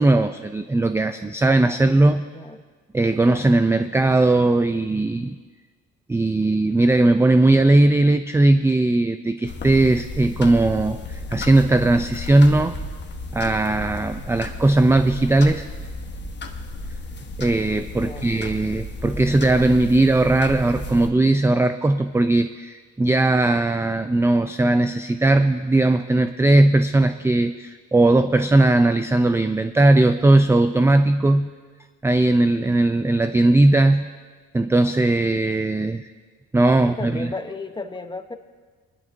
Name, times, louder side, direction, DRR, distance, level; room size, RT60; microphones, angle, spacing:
voice 1, 0.0-2.3 2.9-5.4 6.1-12.8 13.3-15.7 17.4-31.5 32.0-34.1 34.5-36.0 36.5-37.3, right 2 dB, 10° right, 9 dB, 0.4 m, -18 dB
sound 1, 9.5-21.1, left 2 dB, 35° left, 1.2 m, -33 dB
voice 2, 18.0-18.4 36.8-38.3, left 3 dB, 15° left, 7 dB, 0.9 m, -34 dB
22.5 x 11.0 x 2.7 m, 1.5 s
cardioid pair, 90°, 30 cm